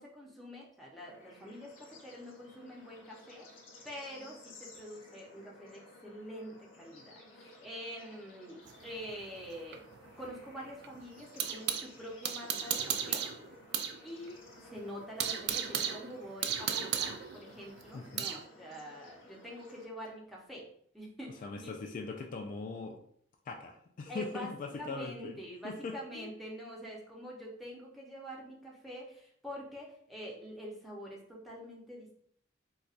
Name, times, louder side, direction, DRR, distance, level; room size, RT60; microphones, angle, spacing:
voice 1, 0.0-3.6 3.8-9.8 10.2-13.2 14.0-20.7 20.9-21.7 24.1-32.1, equal, ahead, -4 dB, 0.7 m, -46 dB
Bird / Insect / Frog, 1.0-19.9, left 1 dB, 80° left, 1.0 m, -56 dB
sound 1, 8.7-11.9 12.2-14.0 14.3-14.4 14.8-18.4, right 8 dB, 60° right, 0.3 m, -35 dB
voice 2, 17.9-18.3 21.4-23.0 23.5-25.4 25.6-26.3, left 4 dB, 45° left, 3 dB, 0.3 m, -41 dB
4.0 x 2.3 x 2.4 m, 0.64 s
head